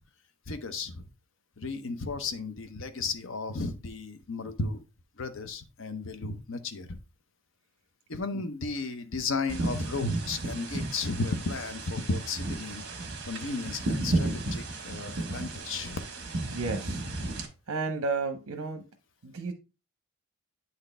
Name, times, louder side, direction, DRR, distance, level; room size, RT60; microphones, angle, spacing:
voice 1, 0.5-1.1 1.6-4.8 5.2-7.0 8.1-12.8 13.2-16.0, left 3 dB, 60° left, 0.7 m, -34 dB
sound 1, 9.5-17.5, right 2 dB, 50° right, 1.4 m, -33 dB
voice 2, 16.4-17.0 17.7-18.8 19.2-19.5, right 4 dB, 75° right, 0.7 m, -32 dB
8.5 x 4.1 x 3.3 m
head